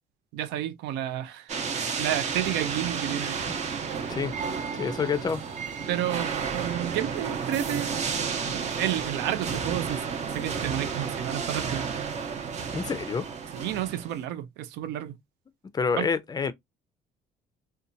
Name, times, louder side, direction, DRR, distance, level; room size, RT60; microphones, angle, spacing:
voice 1, 0.3-1.5 2.0-3.4 5.9-8.0 8.5-10.0 10.3-11.8 13.5-15.2 16.0-16.1, right 12 dB, 85° right, 0.4 m, -31 dB
sound 1, 1.5-14.2, right 6 dB, 45° right, 0.7 m, -32 dB
voice 2, 4.7-5.4 12.7-13.3 15.7-16.5, left 5 dB, 25° left, 0.4 m, -28 dB
2.7 x 2.2 x 2.5 m
cardioid pair, 110°, 17 cm